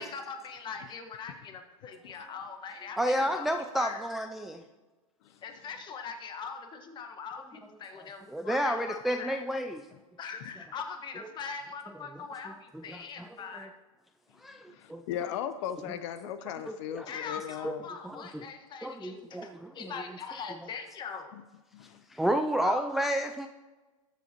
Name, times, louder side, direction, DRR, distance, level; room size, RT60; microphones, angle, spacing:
voice 1, 0.0-4.0 5.4-9.4 10.2-13.7 17.0-21.3 22.6-22.8, left 5 dB, 25° left, 5 dB, 1.4 m, -41 dB
voice 2, 3.0-4.6 8.3-9.8 11.2-11.3 12.5-13.7 14.4-15.0 16.7-17.1 17.6-17.7 18.0-18.4 18.8-19.9 22.1-23.5, equal, ahead, 5 dB, 0.3 m, -31 dB
voice 3, 14.7-17.9 21.7-22.0, left 10 dB, 55° left, 11 dB, 0.7 m, -37 dB
19.5 x 7.1 x 2.9 m, 1.2 s
hypercardioid pair, 130°, 18 cm